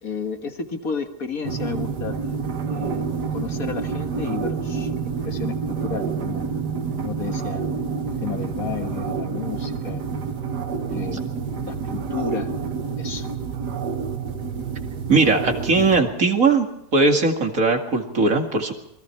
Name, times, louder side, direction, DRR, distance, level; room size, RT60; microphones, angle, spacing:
voice 1, 0.0-2.2 2.6-6.5 7.0-7.7 8.1-10.0 10.9-11.3 11.6-12.5 13.0-13.3, left 6 dB, 60° left, 6 dB, 2.0 m, -32 dB
sound 1, 1.4-16.0, right 5 dB, 75° right, 2.0 m, -28 dB
voice 2, 15.1-16.7 16.9-18.7, right 3 dB, 55° right, 4 dB, 2.6 m, -19 dB
27.5 x 21.5 x 4.6 m, 0.78 s
omnidirectional pair, 1.7 m